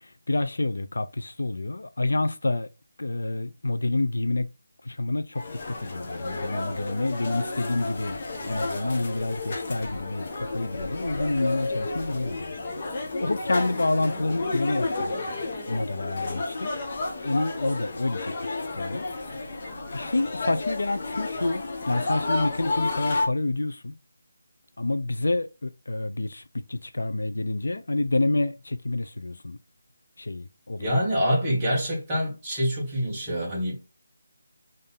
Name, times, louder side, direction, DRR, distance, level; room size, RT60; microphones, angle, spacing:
voice 1, 0.0-2.7 3.0-4.5 4.8-8.2 8.5-12.6 13.2-15.1 15.7-16.7 17.2-19.6 19.9-23.9 24.8-29.6 30.2-31.0, left 2 dB, 80° left, 0.5 m, -28 dB
sound 1, 5.4-23.3, left 2 dB, 25° left, 0.6 m, -31 dB
voice 2, 30.8-33.8, equal, 10° right, 0.9 m, -26 dB
3.6 x 2.6 x 3.9 m
figure-of-eight pair, 180°, 0 cm